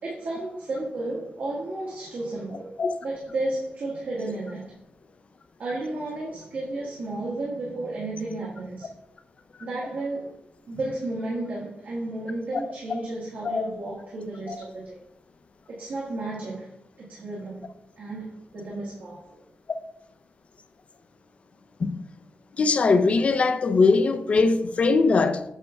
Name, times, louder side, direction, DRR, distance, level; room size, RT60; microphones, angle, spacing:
voice 1, 0.0-2.7 3.0-4.7 5.6-8.9 9.6-10.3 10.7-15.0 15.7-16.7 17.0-17.7 18.0-19.3, right 2 dB, 65° right, 1.7 m, -32 dB
voice 2, 22.6-25.4, left 4 dB, 40° left, 0.5 m, -21 dB
8.1 x 5.7 x 3.4 m
wide cardioid pair, 160°, 3 cm